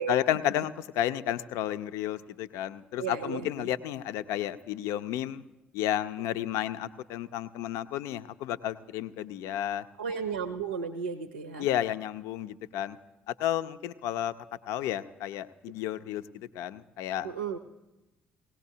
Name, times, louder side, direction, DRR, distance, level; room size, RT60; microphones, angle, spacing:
voice 1, 0.1-5.4 5.7-9.8 11.6-13.0 13.3-14.3 14.7-17.3, left 11 dB, 65° left, 13 dB, 0.5 m, -32 dB
voice 2, 3.0-3.7 10.0-11.7 17.2-17.6, right 6 dB, 85° right, 6 dB, 0.6 m, -34 dB
18.0 x 18.0 x 2.8 m, 0.97 s
figure-of-eight pair, 45°, 5 cm